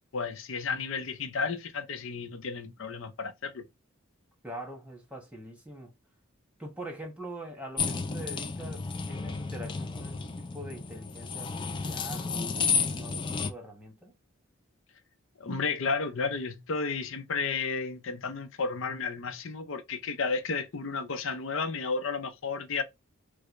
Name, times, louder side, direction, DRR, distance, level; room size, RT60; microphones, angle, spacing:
voice 1, 0.1-3.6 15.4-22.8, left 4 dB, 65° left, 0.6 m, -32 dB
voice 2, 4.4-5.9 6.6-14.1, right 1 dB, 5° right, 1.1 m, -44 dB
sound 1, 7.8-13.5, left 5 dB, 25° left, 0.3 m, -32 dB
4.8 x 2.1 x 2.5 m
head